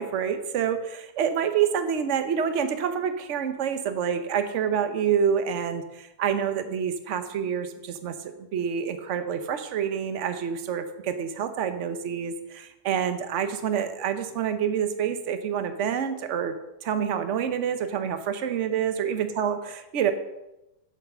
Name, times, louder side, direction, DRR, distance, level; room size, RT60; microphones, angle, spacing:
voice 1, 0.0-16.5 16.8-20.1, right 8 dB, 55° right, 9 dB, 1.1 m, -27 dB
8.3 x 8.2 x 5.6 m, 0.96 s
omnidirectional pair, 1.6 m